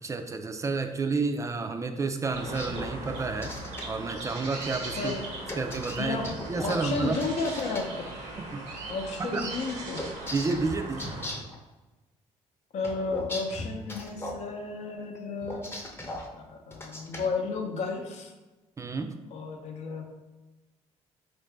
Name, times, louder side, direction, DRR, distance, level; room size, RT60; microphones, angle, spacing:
voice 1, 0.0-3.5 3.8-5.2 5.6-6.2 6.5-7.2 8.5-8.6 9.2-9.4 10.3-11.2 18.8-19.1, right 4 dB, 25° right, 6 dB, 0.3 m, -30 dB
sound 1, 2.3-3.8 5.5-7.8 10.0-11.6 12.8-14.4 15.4-16.3 16.7-17.3, left 1 dB, 20° left, 0.6 m, -38 dB
sound 2, 2.3-11.3, right 2 dB, 90° right, 0.9 m, -39 dB
voice 2, 4.9-5.3 6.0-8.1 8.9-10.1 12.7-15.7 16.3-18.3 19.3-20.0, left 4 dB, 70° left, 3 dB, 0.6 m, -33 dB
3.7 x 2.6 x 3.3 m, 1.1 s
cardioid pair, 90°, 12 cm